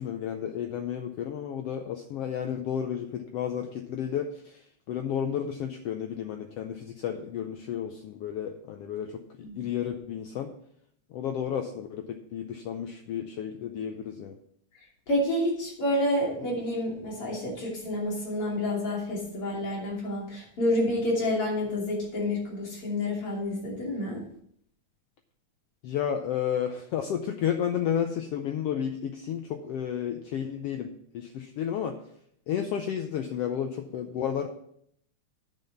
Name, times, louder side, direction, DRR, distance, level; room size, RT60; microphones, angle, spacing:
voice 1, 0.0-10.5 11.1-14.4 25.8-32.0 32.5-34.5, left 9 dB, 85° left, 5 dB, 1.3 m, -32 dB
voice 2, 15.1-24.2, left 1 dB, 45° left, -4 dB, 3.7 m, -29 dB
9.2 x 5.5 x 6.9 m, 0.69 s
omnidirectional pair, 3.5 m